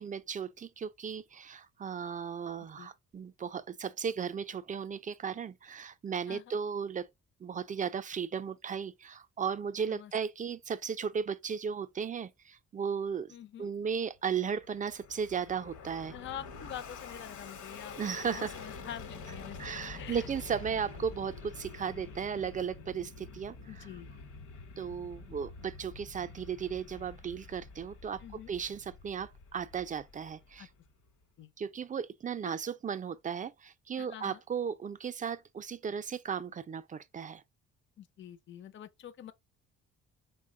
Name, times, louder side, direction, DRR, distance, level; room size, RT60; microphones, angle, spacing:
voice 1, 0.0-7.1 7.4-16.1 18.0-18.5 19.6-23.9 24.8-28.2 28.5-30.7 31.6-37.4, right 7 dB, 25° right, 0.4 m, -36 dB
voice 2, 13.3-13.7 16.1-18.0 18.3-20.3 23.7-24.1 28.2-28.6 30.6-30.7 31.4-31.5 32.4-32.6 34.0-34.4 38.0-39.3, left 10 dB, 40° left, 0.5 m, -46 dB
Fixed-wing aircraft airplane, 14.3-30.9, left 4 dB, 75° left, 1.0 m, -47 dB
3.7 x 2.1 x 3.6 m
cardioid pair, 90°, 30 cm